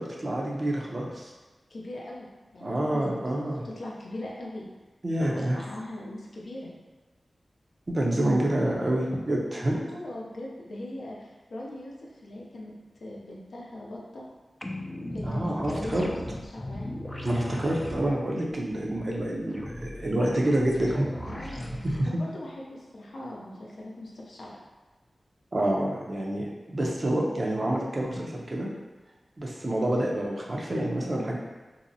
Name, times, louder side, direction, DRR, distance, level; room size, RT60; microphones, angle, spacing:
voice 1, 0.0-1.3 2.6-3.6 5.0-5.6 7.9-9.8 15.2-16.1 17.2-21.1 22.0-22.1 25.5-26.5 26.7-28.7 29.4-31.4, right 1 dB, 50° right, -2 dB, 0.5 m, -27 dB
voice 2, 1.7-2.3 2.5-3.3 3.6-4.7 5.2-6.7 9.7-12.7 13.0-14.2 15.1-16.2 16.5-17.0 21.3-24.6, left 1 dB, 80° left, -4 dB, 0.5 m, -40 dB
sound 1, 14.6-22.0, left 1 dB, 20° left, 0.3 m, -38 dB
2.6 x 2.0 x 2.7 m, 1.3 s
cardioid pair, 45°, 0 cm